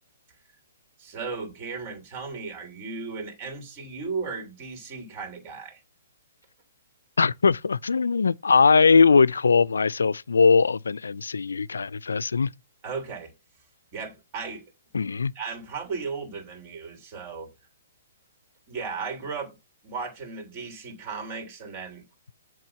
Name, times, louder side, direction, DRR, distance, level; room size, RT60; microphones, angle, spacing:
voice 1, 1.0-5.8 12.8-13.3 13.9-14.7 15.3-17.5 18.7-19.6 19.8-22.0, right 4 dB, 35° right, 3.2 m, -35 dB
voice 2, 7.2-12.5 14.9-15.3, left 5 dB, 85° left, 0.3 m, -20 dB
7.8 x 3.7 x 5.7 m
hypercardioid pair, 135°, 0 cm